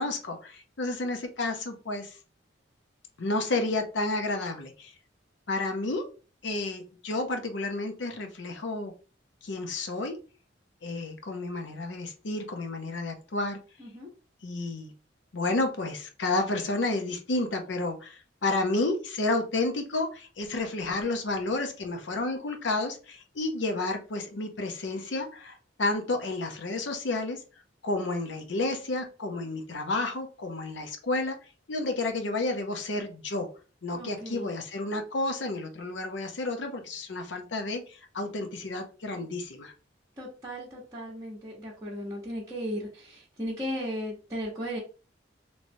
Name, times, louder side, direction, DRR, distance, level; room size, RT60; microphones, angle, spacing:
voice 1, 0.0-2.2 3.2-4.9 5.5-6.0 6.4-8.9 9.4-10.2 10.8-13.6 14.4-14.9 15.3-27.4 27.8-31.4 31.7-33.5 33.8-39.7, left 2 dB, 70° left, 5 dB, 0.7 m, -31 dB
voice 2, 13.8-14.1 33.9-34.5 40.2-44.8, equal, 20° right, -6 dB, 0.8 m, -36 dB
3.1 x 3.0 x 2.6 m, 0.35 s
head